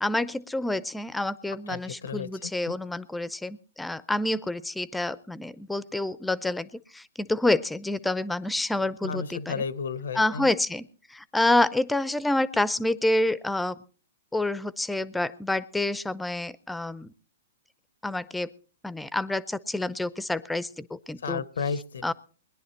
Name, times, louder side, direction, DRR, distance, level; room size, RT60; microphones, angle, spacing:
voice 1, 0.0-9.6 10.1-13.8 14.3-17.1 18.0-18.5 18.8-21.4 22.0-22.1, left 2 dB, 5° left, 18 dB, 0.6 m, -28 dB
voice 2, 1.7-2.7 9.0-10.5 21.2-22.1, left 5 dB, 80° left, 18 dB, 1.0 m, -33 dB
21.0 x 10.5 x 4.4 m, 0.40 s
hypercardioid pair, 130°, 0 cm